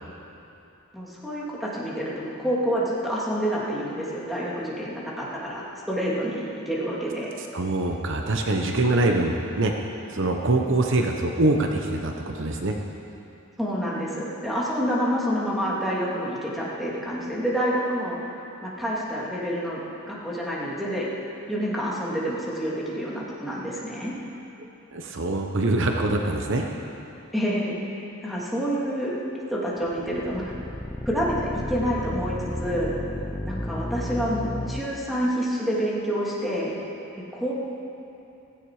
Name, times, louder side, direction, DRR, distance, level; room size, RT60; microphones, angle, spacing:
voice 1, 0.9-7.3 13.6-18.2 18.6-21.1 21.5-24.1 27.3-29.1 29.5-30.5 31.0-32.9 33.4-36.7 37.3-37.5, equal, ahead, -7 dB, 2.8 m, -28 dB
voice 2, 7.4-9.7 10.1-12.7 24.9-26.7, right 2 dB, 60° right, 2 dB, 1.0 m, -24 dB
sound 1, 29.8-34.8, left 1 dB, 15° left, 0.7 m, -32 dB
16.0 x 16.0 x 4.9 m, 2.8 s
head